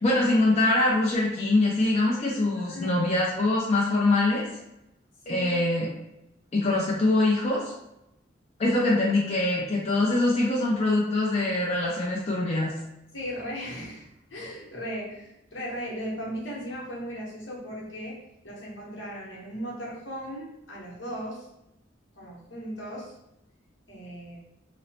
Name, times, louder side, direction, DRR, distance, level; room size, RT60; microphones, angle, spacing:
voice 1, 0.0-4.5 5.3-5.9 6.5-7.7 8.6-12.7, left 2 dB, 35° left, -4 dB, 0.4 m, -23 dB
voice 2, 2.5-3.0 5.2-5.5 13.1-18.2 18.4-21.5 22.1-23.1 23.9-24.4, equal, 80° left, -4 dB, 0.9 m, -37 dB
3.0 x 2.0 x 2.7 m, 0.87 s
head